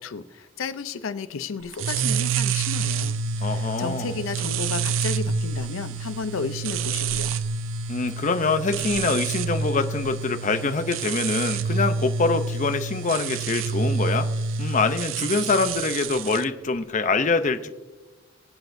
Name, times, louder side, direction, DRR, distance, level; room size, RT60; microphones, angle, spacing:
voice 1, 0.0-7.4, left 5 dB, 90° left, 12 dB, 0.5 m, -33 dB
sound 1, 1.7-16.4, right 5 dB, 75° right, 0.4 m, -28 dB
voice 2, 3.4-4.2 7.9-14.3 14.6-17.7, left 4 dB, 40° left, 9 dB, 0.6 m, -25 dB
23.0 x 8.0 x 2.6 m, 1.2 s
head